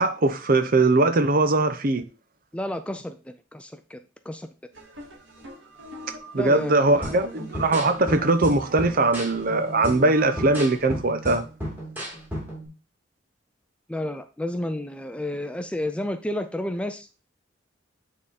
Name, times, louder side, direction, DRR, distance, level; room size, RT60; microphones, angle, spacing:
voice 1, 0.0-2.0 6.3-11.4, right 2 dB, 45° right, 0.7 m, -21 dB
voice 2, 2.5-4.5 6.4-7.2 13.9-17.1, left 1 dB, 5° left, 0.4 m, -31 dB
sound 1, 4.7-10.8, equal, 70° right, 2.3 m, -41 dB
sound 2, 7.0-12.7, equal, 10° right, 2.5 m, -34 dB
8.8 x 3.7 x 4.2 m
head